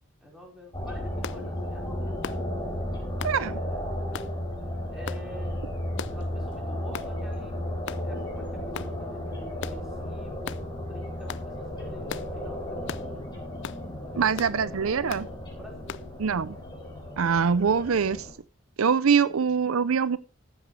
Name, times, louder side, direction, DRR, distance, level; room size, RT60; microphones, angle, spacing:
voice 1, 0.2-2.2 3.1-4.2 4.9-5.7 6.1-7.5 8.0-13.3 13.9-15.2 15.5-16.0 19.0-19.6, equal, 5° right, -2 dB, 4.7 m, -48 dB
sound 1, 0.7-18.3, left 1 dB, 20° left, 4.3 m, -34 dB
sound 2, 1.2-1.4 2.2-2.4 3.2-3.4 4.1-4.3 5.1-5.2 6.0-6.2 6.9-7.1 7.9-8.1 8.7-8.9 9.6-9.8 10.4-10.6 11.3-11.5 12.1-12.3 12.9-13.1 13.6-13.8 14.4-14.6 15.1-15.3 15.9-16.1, left 7 dB, 60° left, 0.5 m, -37 dB
voice 2, 3.2-3.6 14.2-15.3 16.2-16.5 17.2-18.3 18.8-20.2, right 6 dB, 80° right, 17 dB, 0.6 m, -24 dB
14.5 x 10.0 x 3.3 m, 0.31 s
head